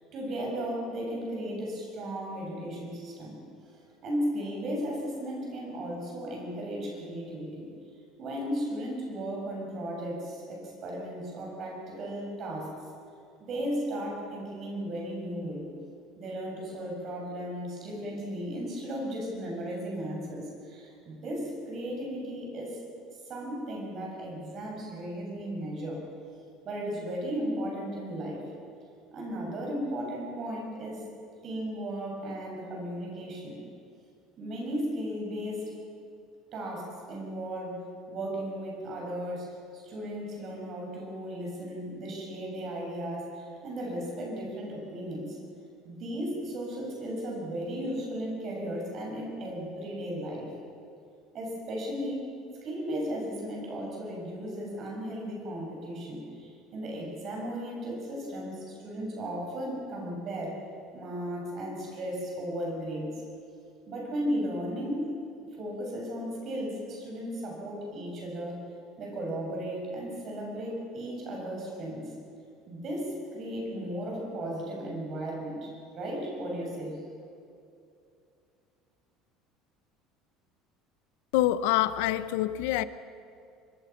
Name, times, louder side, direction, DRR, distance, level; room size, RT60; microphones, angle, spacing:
voice 1, 0.1-3.4 3.7-7.7 8.2-12.7 13.4-15.7 16.2-22.8 23.3-26.0 26.6-28.4 29.1-31.0 31.4-33.6 34.4-35.6 36.5-45.4 45.8-50.5 51.3-52.2 52.6-60.6 60.9-63.1 63.9-65.1 65.6-68.6 69.0-72.1 72.7-77.0, equal, 35° right, 7.1 m, -35 dB
voice 2, 81.3-82.8, left 14 dB, 90° left, 0.9 m, -26 dB
25.0 x 23.0 x 5.9 m
cardioid pair, 170°, 0 cm